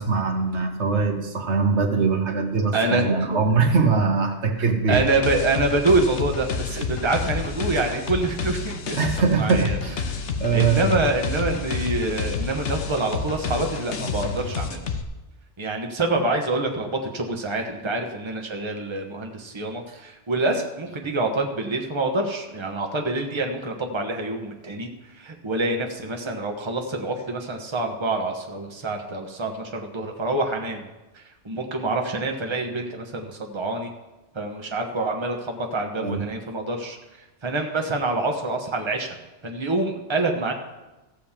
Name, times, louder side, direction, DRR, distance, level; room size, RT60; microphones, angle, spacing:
voice 1, 0.0-5.0 9.0-10.1 10.4-10.9 36.0-36.3, right 4 dB, 75° right, 4 dB, 1.5 m, -22 dB
voice 2, 2.7-3.4 4.9-9.8 10.5-14.8 15.6-30.9 31.1-33.9 34.3-37.0 37.4-39.2 39.4-40.5, right 2 dB, 25° right, 3 dB, 1.2 m, -26 dB
sound 1, 4.9-15.0, left 5 dB, 80° left, 1.2 m, -29 dB
15.0 x 5.2 x 7.3 m, 1.1 s
omnidirectional pair, 1.2 m